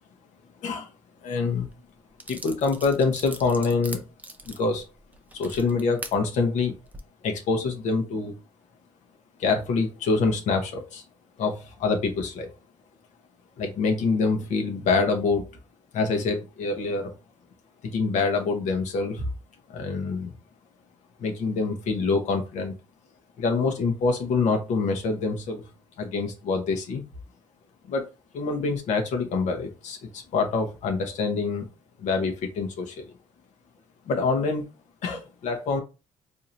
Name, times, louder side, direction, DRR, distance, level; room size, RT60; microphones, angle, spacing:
voice 1, 1.2-1.7 2.3-4.0 4.5-4.8 5.4-6.7 7.2-8.3 9.4-11.0 11.4-12.5 13.6-15.4 15.9-17.1 17.8-19.3 19.7-20.3 21.2-22.7 23.4-25.6 26.0-27.0 27.9-28.1 28.3-31.7 32.0-32.9 34.1-34.6 35.0-35.8, left 4 dB, 90° left, 4 dB, 0.9 m, -25 dB
sound 1, 1.7-1.8 2.2-6.2 6.7-7.0, right 2 dB, 15° right, 0.6 m, -40 dB
4.3 x 2.7 x 2.6 m, 0.29 s
cardioid pair, 125°, 12 cm